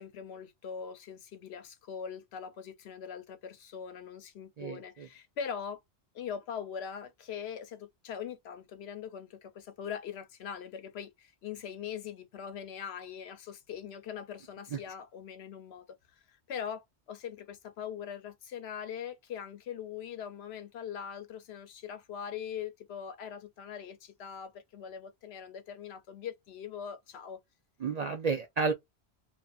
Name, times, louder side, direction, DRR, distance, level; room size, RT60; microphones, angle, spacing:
voice 1, 0.0-5.8 6.1-27.4, left 7 dB, 70° left, 0.8 m, -42 dB
voice 2, 4.6-5.1 27.8-28.7, right 4 dB, 55° right, 0.4 m, -31 dB
2.5 x 2.3 x 2.3 m
omnidirectional pair, 1.1 m